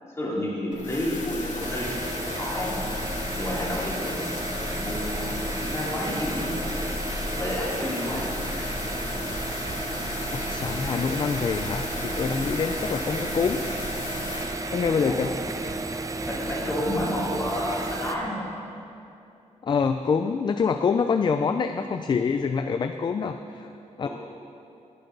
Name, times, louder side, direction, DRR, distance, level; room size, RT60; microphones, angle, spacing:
voice 1, 0.2-2.9 3.4-6.7 7.4-8.6 15.0-15.4 16.1-18.4 21.1-21.3 24.0-24.1, left 1 dB, 20° left, -6 dB, 3.2 m, -31 dB
sound 1, 0.7-14.4, left 2 dB, 85° left, 2.4 m, -34 dB
sound 2, 1.6-18.2, right 2 dB, 25° right, 0.6 m, -33 dB
voice 2, 10.5-13.6 14.7-15.3 19.6-23.7 24.0-24.1, left 5 dB, 40° left, 7 dB, 0.4 m, -25 dB
18.5 x 10.5 x 3.9 m, 2.7 s
wide cardioid pair, 165°, 12 cm